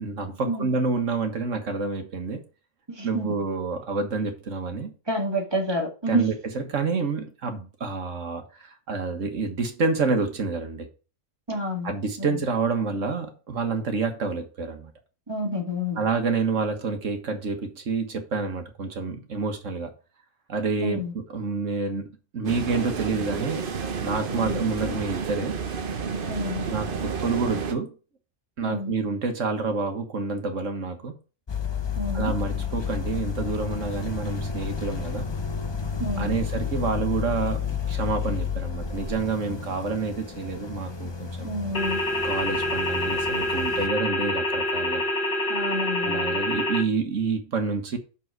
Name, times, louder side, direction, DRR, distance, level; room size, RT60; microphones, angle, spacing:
voice 1, 0.0-2.4 3.0-4.9 6.1-10.9 11.8-14.9 16.0-19.9 20.5-22.1 22.3-23.7 24.0-25.6 26.7-27.9 28.6-31.1 32.1-35.3 36.2-41.5 42.2-45.0 46.0-48.0, right 4 dB, 75° right, 1.8 m, -28 dB
voice 2, 2.9-3.3 5.1-6.3 11.5-11.9 12.2-12.4 15.3-16.1 20.8-21.1 24.3-24.6 26.3-26.7 28.6-28.9 32.0-32.3 36.0-36.4 41.4-42.0 45.5-46.4, equal, 20° right, 2.1 m, -29 dB
sound 1, 22.4-27.7, right 5 dB, 50° right, 1.0 m, -30 dB
sound 2, 31.5-43.9, left 6 dB, 25° left, 0.7 m, -31 dB
sound 3, 41.7-46.8, left 1 dB, 40° left, 1.4 m, -26 dB
6.3 x 5.8 x 6.1 m
omnidirectional pair, 1.3 m